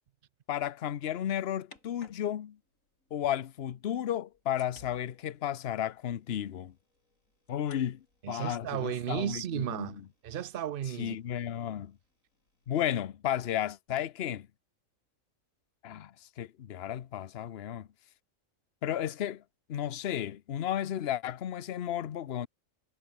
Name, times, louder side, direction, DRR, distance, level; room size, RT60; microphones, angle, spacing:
voice 1, 0.5-2.6 3.1-6.7 7.5-10.0 11.0-12.0 12.7-14.5 15.8-17.9 18.8-19.4 19.7-22.5, left 10 dB, 55° left, 1.0 m, -33 dB
sound 1, 1.2-3.3 4.0-13.1, left 2 dB, 75° left, 6.2 m, -63 dB
voice 2, 8.2-11.2, right 10 dB, 55° right, 0.7 m, -34 dB
omnidirectional pair, 1.4 m